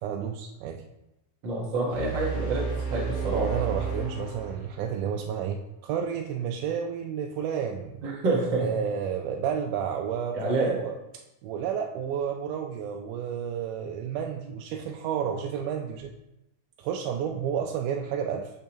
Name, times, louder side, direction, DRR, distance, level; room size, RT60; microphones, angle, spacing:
voice 1, 0.0-0.8 3.3-8.0 8.6-11.0 11.4-16.1 16.8-18.5, right 8 dB, 90° right, 2 dB, 2.1 m, -31 dB
voice 2, 1.4-2.6 2.9-3.4 8.0-8.7 10.3-10.7, right 2 dB, 50° right, -4 dB, 1.5 m, -27 dB
sound 1, 1.9-5.0, right 6 dB, 25° left, 2.1 m, -32 dB
8.9 x 6.4 x 2.9 m, 0.92 s
omnidirectional pair, 3.6 m